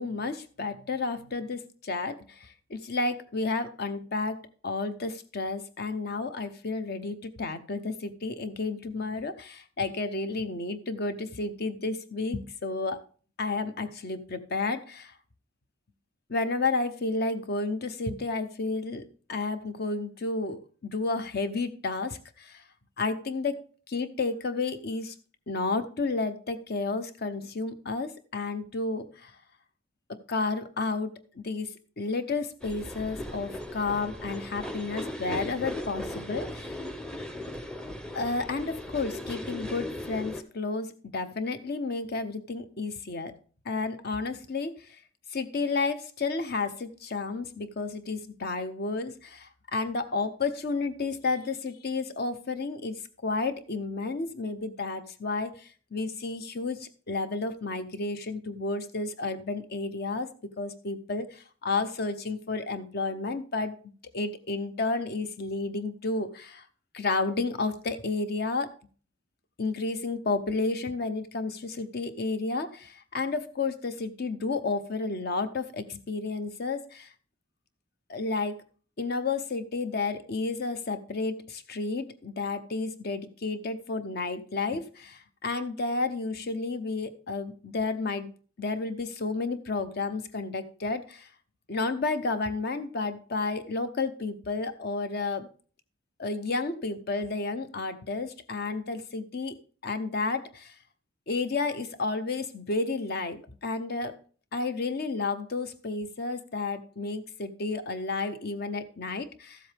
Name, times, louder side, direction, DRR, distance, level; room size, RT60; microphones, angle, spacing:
voice 1, 0.0-13.0 13.4-15.1 16.3-22.6 23.0-23.6 23.9-25.1 25.5-29.3 30.1-36.8 38.1-43.3 43.6-45.0 45.3-63.7 64.1-66.7 66.9-68.7 69.6-77.1 78.1-78.6 79.0-88.3 88.6-91.3 91.7-95.5 96.2-99.6 99.8-100.7 101.3-104.2 104.5-109.6, left 3 dB, 55° left, 0.8 m, -31 dB
sound 1, 32.6-40.4, left 1 dB, 5° left, 0.6 m, -37 dB
13.5 x 7.6 x 3.4 m
head